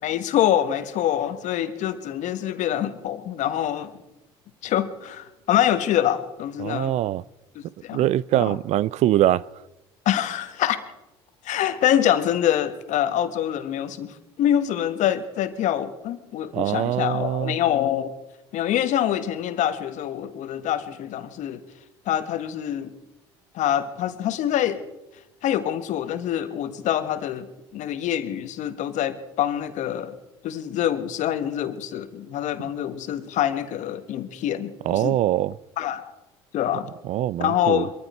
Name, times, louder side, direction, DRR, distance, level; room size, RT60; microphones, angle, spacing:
voice 1, 0.0-3.9 4.6-7.0 7.5-8.0 8.3-8.6 10.0-10.8 11.4-18.1 18.5-21.6 22.1-22.9 23.5-24.8 25.4-30.2 30.4-35.2 35.8-36.1 36.5-36.9 37.4-37.9, left 11 dB, 60° left, 1.4 m, -25 dB
voice 2, 6.6-7.2 7.9-9.4 16.5-17.6 34.8-35.6 37.0-37.9, right 13 dB, 55° right, 0.4 m, -23 dB
22.5 x 14.0 x 4.4 m
hypercardioid pair, 70°, 14 cm